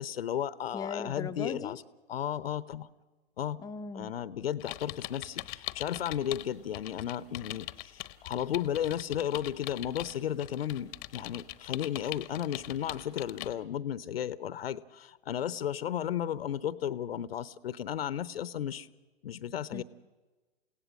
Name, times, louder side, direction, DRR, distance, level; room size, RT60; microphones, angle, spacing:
voice 1, 0.0-1.8 2.1-2.9 3.4-3.6 3.9-18.9 19.2-19.8, left 10 dB, 65° left, 17 dB, 0.8 m, -34 dB
voice 2, 0.7-1.8 3.6-4.1 19.7-19.8, left 5 dB, 10° left, 8 dB, 0.7 m, -38 dB
sound 1, 4.6-6.5 6.7-13.5, left 19 dB, 35° left, 0.9 m, -41 dB
29.0 x 17.0 x 7.6 m, 1.3 s
figure-of-eight pair, 110°, 32 cm